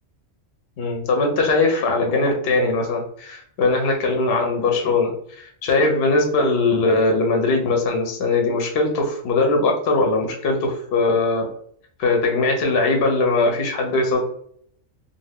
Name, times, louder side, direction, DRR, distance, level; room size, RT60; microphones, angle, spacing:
voice 1, 0.8-11.5 12.0-14.2, left 3 dB, 60° left, 2 dB, 0.7 m, -20 dB
2.6 x 2.1 x 3.3 m, 0.64 s
omnidirectional pair, 1.4 m